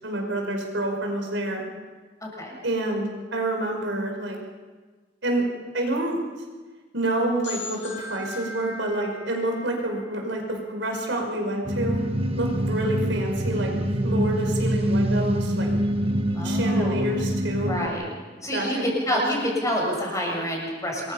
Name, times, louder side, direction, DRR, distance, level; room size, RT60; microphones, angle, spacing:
voice 1, 0.0-1.6 2.6-4.4 5.2-5.4 5.7-6.2 6.9-12.0 12.4-13.7 14.0-15.7 16.4-17.8 18.5-19.2, right 1 dB, 80° right, 2 dB, 5.3 m, -28 dB
voice 2, 2.2-2.5 16.3-17.1 17.6-18.0 18.4-21.1, equal, 20° left, -2 dB, 7.0 m, -27 dB
sound 1, 7.4-11.1, left 2 dB, 75° left, 5.6 m, -39 dB
sound 2, 11.7-17.9, right 1 dB, 30° right, 1.4 m, -25 dB
27.0 x 22.0 x 5.8 m, 1.4 s
head